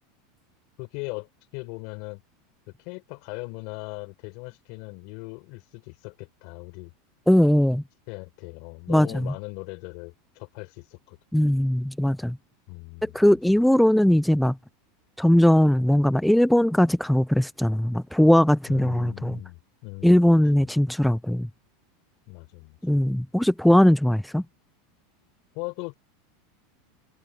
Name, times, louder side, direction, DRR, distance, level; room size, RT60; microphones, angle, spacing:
voice 1, 0.8-2.2 2.7-6.9 8.1-11.2 12.7-13.6 18.7-20.2 20.6-20.7 22.3-22.8 25.5-25.9, left 30 dB, 55° left, 6.0 m, -39 dB
voice 2, 7.3-7.8 8.9-9.3 11.3-12.4 13.0-14.6 15.2-19.4 20.0-21.5 22.8-24.4, left 1 dB, ahead, 0.3 m, -20 dB
supercardioid pair, 150°, 0 cm